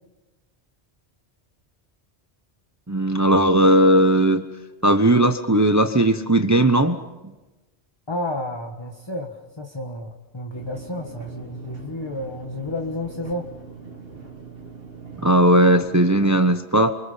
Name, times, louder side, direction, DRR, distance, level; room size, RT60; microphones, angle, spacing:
voice 1, 2.9-4.4 4.8-7.0 15.2-16.9, right 1 dB, 15° right, 7 dB, 0.9 m, -17 dB
voice 2, 8.1-13.5, left 1 dB, 25° left, 3 dB, 1.6 m, -31 dB
sound 1, 10.5-16.4, right 5 dB, 60° right, 2.8 m, -41 dB
29.5 x 25.0 x 5.7 m, 1.1 s
omnidirectional pair, 1.1 m